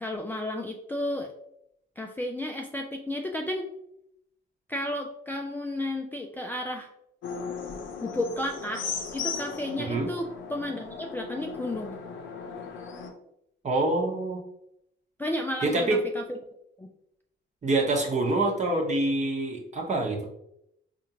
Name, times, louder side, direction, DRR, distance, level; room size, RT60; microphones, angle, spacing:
voice 1, 0.0-1.3 2.0-3.7 4.7-6.9 8.0-12.0 15.2-15.9 16.1-16.4 16.8-16.9, left 1 dB, 10° left, 1 dB, 0.3 m, -32 dB
sound 1, 7.2-13.1, left 5 dB, 80° left, 0.6 m, -37 dB
voice 2, 9.8-10.1 13.6-14.4 15.6-16.0 17.6-20.2, right 2 dB, 35° right, 1 dB, 0.9 m, -26 dB
4.3 x 2.5 x 2.8 m, 0.77 s
cardioid pair, 90°, 20 cm